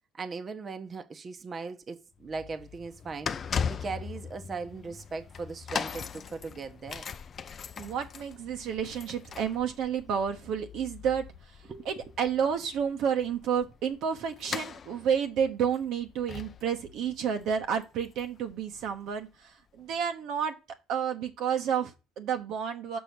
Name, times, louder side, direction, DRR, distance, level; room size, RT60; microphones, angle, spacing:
voice 1, 0.2-7.1 11.7-11.8, right 4 dB, 35° right, 1.0 m, -39 dB
sound 1, 2.2-19.1 19.8-19.9, left 7 dB, 40° left, 0.6 m, -40 dB
voice 2, 7.8-11.2 11.8-19.3 19.8-20.5 20.9-23.0, right 7 dB, 60° right, 1.1 m, -30 dB
6.0 x 5.5 x 6.0 m
hypercardioid pair, 60°, 0 cm